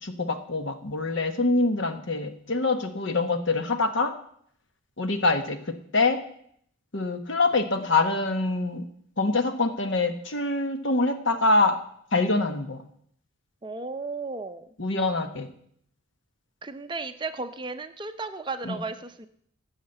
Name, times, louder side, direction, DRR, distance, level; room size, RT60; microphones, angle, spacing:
voice 1, 0.0-4.1 5.0-6.2 6.9-8.9 9.2-11.8 12.1-12.8 14.8-15.5 18.6-18.8, left 3 dB, 60° left, 8 dB, 1.2 m, -25 dB
voice 2, 13.6-14.7 16.6-19.3, right 3 dB, 20° right, 9 dB, 0.5 m, -34 dB
14.0 x 5.7 x 7.9 m, 0.67 s
head